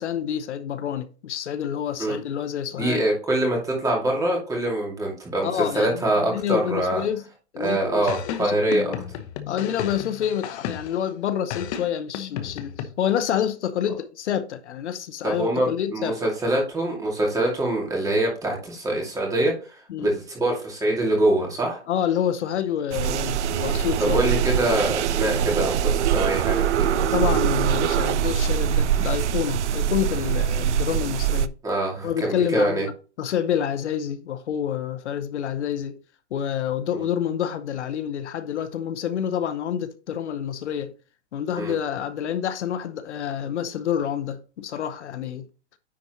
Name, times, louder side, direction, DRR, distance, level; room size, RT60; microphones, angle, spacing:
voice 1, 0.0-3.1 5.4-7.3 7.5-9.0 9.5-16.2 19.9-20.1 21.9-24.2 27.1-31.5 32.0-32.9 33.2-36.0 36.3-40.9 41.3-45.5, left 9 dB, 80° left, 0.8 m, -28 dB
voice 2, 2.8-7.0 7.6-8.9 15.2-21.8 24.0-27.1 31.6-32.8 36.9-37.1 41.6-41.7, right 1 dB, 10° right, 2.4 m, -24 dB
sound 1, 8.1-11.1 11.5-12.9, left 9 dB, 35° left, 0.9 m, -33 dB
sound 2, 22.9-31.5, right 9 dB, 85° right, 0.5 m, -23 dB
9.8 x 4.4 x 3.0 m
hypercardioid pair, 145°, 34 cm